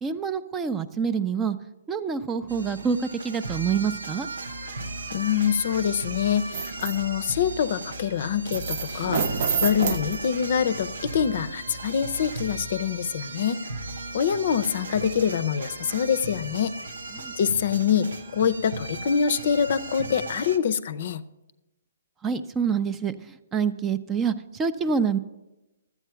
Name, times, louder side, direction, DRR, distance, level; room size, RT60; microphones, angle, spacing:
voice 1, 0.0-1.6 1.9-4.3 17.1-17.3 22.2-23.1 23.5-25.2, right 6 dB, 15° right, 11 dB, 0.4 m, -26 dB
sound 1, 2.5-20.6, right 2 dB, 80° right, 0.8 m, -36 dB
voice 2, 5.1-9.2 9.5-13.6 14.1-16.7 17.4-21.2, left 8 dB, 55° left, 15 dB, 0.5 m, -25 dB
sound 2, 6.5-7.0 8.5-10.6 11.3-11.5 12.0-12.1, right 6 dB, 55° right, 0.7 m, -28 dB
11.5 x 8.2 x 5.7 m, 1.0 s
hypercardioid pair, 140°, 0 cm